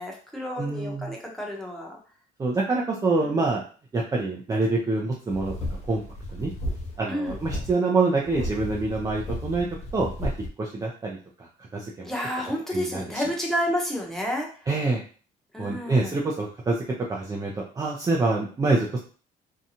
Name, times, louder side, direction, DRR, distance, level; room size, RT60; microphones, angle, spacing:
voice 1, 0.0-2.0 3.2-3.4 7.1-7.4 12.0-14.5 15.5-16.1, equal, ahead, -2 dB, 0.8 m, -30 dB
voice 2, 0.6-1.1 2.4-3.6 3.9-5.5 5.9-6.0 6.3-6.5 7.0-9.7 9.9-10.3 10.6-11.2 11.7-12.1 12.7-13.2 14.7-15.0 15.6-16.8 17.1-17.5 17.8-19.0, right 3 dB, 20° right, -2 dB, 0.4 m, -26 dB
sound 1, 5.3-7.0 7.2-7.7 8.2-10.5, left 1 dB, 45° left, 0.8 m, -33 dB
2.7 x 2.2 x 2.7 m, 0.40 s
cardioid pair, 110°, 17 cm